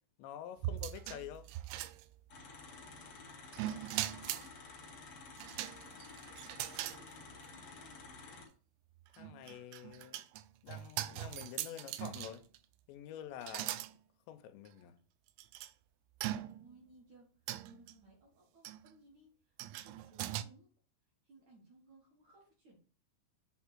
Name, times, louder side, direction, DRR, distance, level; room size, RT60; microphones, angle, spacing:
voice 1, 0.2-1.5 9.1-10.2 10.6-12.4 12.9-13.8 14.3-15.0, left 10 dB, 85° left, 2.9 m, -48 dB
sound 1, 0.6-2.4 3.5-4.5 5.4-7.0 7.4-7.5 9.1-12.6 13.4-13.9 14.7-14.8 15.4-15.7 16.2-16.8 17.5-17.9 18.6-18.9 19.6-20.4, right 14 dB, 85° right, 2.8 m, -41 dB
sound 2, 2.3-8.4, left 3 dB, 55° left, 1.6 m, -52 dB
voice 2, 4.2-4.5 5.5-6.0 6.8-8.0 16.6-20.7 21.2-22.8, right 2 dB, 55° right, 2.2 m, -63 dB
7.9 x 3.5 x 6.0 m
omnidirectional pair, 5.1 m